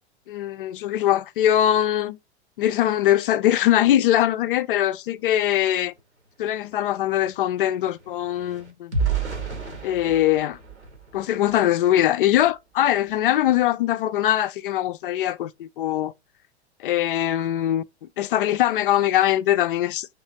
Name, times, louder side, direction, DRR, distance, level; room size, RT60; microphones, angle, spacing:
voice 1, 0.3-2.2 2.6-5.9 6.4-8.9 9.8-10.6 11.1-16.1 16.8-17.8 18.2-20.1, left 12 dB, 50° left, 0.4 m, -22 dB
sound 1, 6.0-6.1 6.3-11.8 12.3-12.5 12.9-13.1, right 5 dB, 90° right, 1.4 m, -32 dB
3.7 x 3.2 x 4.4 m
figure-of-eight pair, 100°, 33 cm